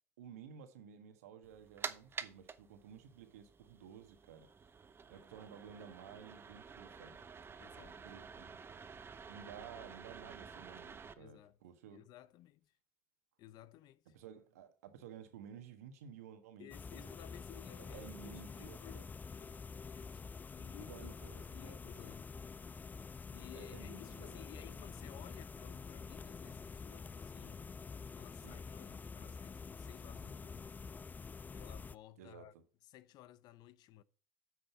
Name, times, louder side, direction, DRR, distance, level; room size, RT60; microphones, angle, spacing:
voice 1, 0.2-4.7 5.1-7.2 8.0-8.6 9.3-12.0 14.1-17.1 17.8-19.1 20.9-22.0 23.5-24.4 28.4-28.6 32.2-32.6, right 8 dB, 80° right, 1.4 m, -54 dB
sound 1, 1.4-11.1, right 5 dB, 30° right, 0.8 m, -50 dB
voice 2, 7.6-8.0 11.2-11.6 11.9-12.8 13.4-14.2 16.6-19.0 19.4-22.3 23.2-27.7 28.1-30.7 31.5-32.5 32.8-34.0, left 13 dB, 60° left, 0.6 m, -57 dB
sound 2, 16.7-31.9, left 5 dB, 20° left, 0.3 m, -48 dB
8.5 x 6.4 x 4.4 m
hypercardioid pair, 70°, 8 cm